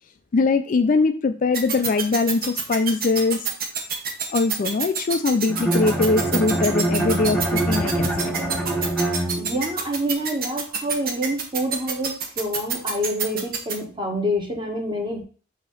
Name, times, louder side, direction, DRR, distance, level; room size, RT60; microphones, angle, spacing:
voice 1, 0.3-3.4 4.3-8.2, left 3 dB, 40° left, 9 dB, 0.4 m, -22 dB
sound 1, 1.5-13.7, right 6 dB, 50° right, 1.1 m, -26 dB
Bowed string instrument, 5.5-9.8, right 1 dB, 5° left, 0.9 m, -24 dB
voice 2, 9.4-15.2, equal, 25° right, -1 dB, 1.6 m, -27 dB
5.8 x 2.9 x 5.6 m, 0.39 s
head